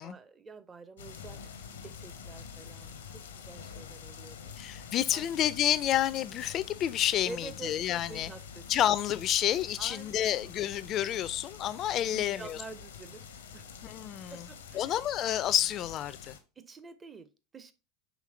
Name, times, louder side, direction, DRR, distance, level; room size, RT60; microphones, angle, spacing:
voice 1, 0.0-1.5 1.8-4.5 5.1-5.3 7.3-7.7 8.1-8.6 9.8-10.6 12.1-13.2 13.5-13.7 14.3-14.9 16.6-17.7, right 3 dB, 25° right, 0.6 m, -47 dB
sound 1, 1.0-16.4, left 7 dB, 90° left, 0.7 m, -47 dB
voice 2, 4.6-8.3 8.7-12.6 13.8-14.5 14.7-16.4, left 11 dB, 45° left, 0.4 m, -29 dB
5.1 x 3.2 x 3.1 m
hypercardioid pair, 90°, 0 cm